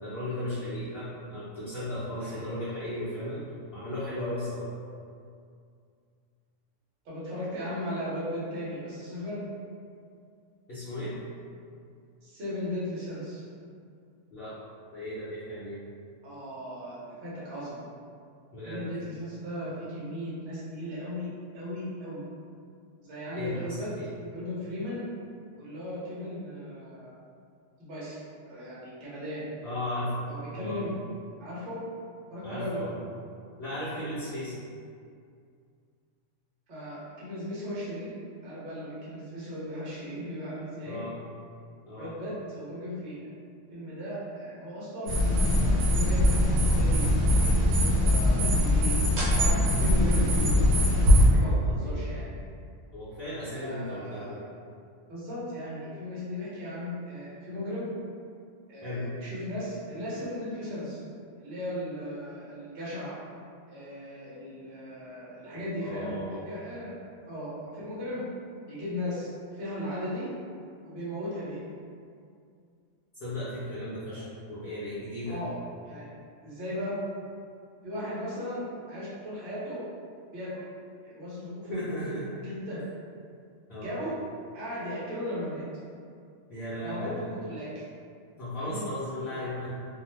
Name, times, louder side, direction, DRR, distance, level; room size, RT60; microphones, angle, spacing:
voice 1, 0.0-3.4 3.7-4.7 10.7-11.1 14.3-14.5 14.9-15.8 18.5-18.8 23.3-24.1 29.6-30.2 30.5-30.8 32.4-33.0 33.6-34.6 40.8-41.1 41.9-42.1 51.4-52.1 52.9-54.4 58.8-59.1 65.5-66.5 73.2-75.4 81.7-82.3 83.7-83.9 86.5-87.3 88.4-89.7, left 1 dB, 55° left, -13 dB, 0.8 m, -35 dB
voice 2, 7.0-9.4 12.2-13.4 16.2-17.8 18.6-21.3 21.5-22.2 23.0-23.9 24.3-25.1 25.6-27.1 27.8-28.2 28.5-29.5 30.3-30.9 31.4-31.8 32.3-32.9 36.7-38.1 38.4-41.0 42.0-43.3 43.7-49.0 49.3-52.3 53.5-54.4 55.1-57.9 58.7-61.0 61.4-63.2 63.7-67.0 67.2-68.2 68.7-70.3 70.8-71.6 74.1-74.2 75.3-75.6 75.8-76.1 76.4-77.0 77.8-79.8 80.3-80.5 81.0-81.8 82.4-82.8 83.8-84.1 84.5-85.6 86.7-87.8 88.5-88.9 89.3-89.4, equal, 60° right, -9 dB, 1.2 m, -37 dB
sound 1, 45.1-51.2, left 1 dB, 90° right, 1.3 m, -22 dB
2.7 x 2.1 x 3.1 m, 2.3 s
omnidirectional pair, 1.4 m